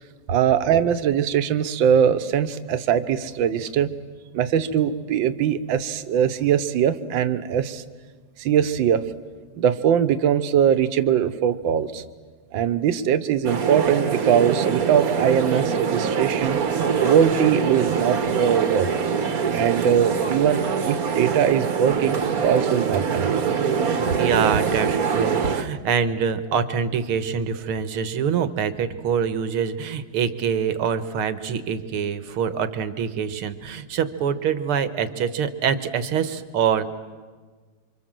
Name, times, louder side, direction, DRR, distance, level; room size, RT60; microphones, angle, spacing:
voice 1, 0.3-3.9 4.3-7.8 8.4-9.1 9.6-12.0 12.5-16.6 17.0-18.9 19.5-23.3, right 8 dB, 65° right, 10 dB, 1.7 m, -21 dB
sound 1, 13.4-25.6, right 6 dB, 45° right, 1.5 m, -24 dB
voice 2, 24.2-36.9, right 7 dB, 80° right, 11 dB, 2.1 m, -25 dB
29.0 x 25.0 x 7.6 m, 1.4 s
omnidirectional pair, 2.4 m